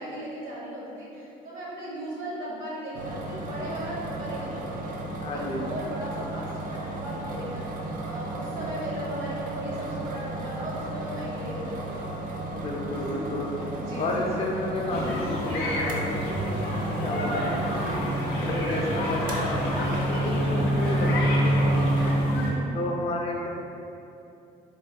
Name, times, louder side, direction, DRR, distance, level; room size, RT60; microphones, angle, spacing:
voice 1, 0.0-4.9 5.3-7.7 8.0-12.1 13.1-13.2 13.7-14.4 22.3-22.8, right 1 dB, 90° right, -7 dB, 1.0 m, -36 dB
sound 1, 2.9-22.1, right 2 dB, 55° right, 0.4 m, -34 dB
voice 2, 5.2-5.7 12.5-13.5 14.0-17.9 18.4-22.2 22.7-23.5, left 2 dB, 35° left, 0 dB, 0.4 m, -32 dB
sound 2, 14.9-22.5, equal, 85° left, 0.6 m, -26 dB
3.0 x 2.2 x 2.8 m, 2.7 s
cardioid pair, 110°, 17 cm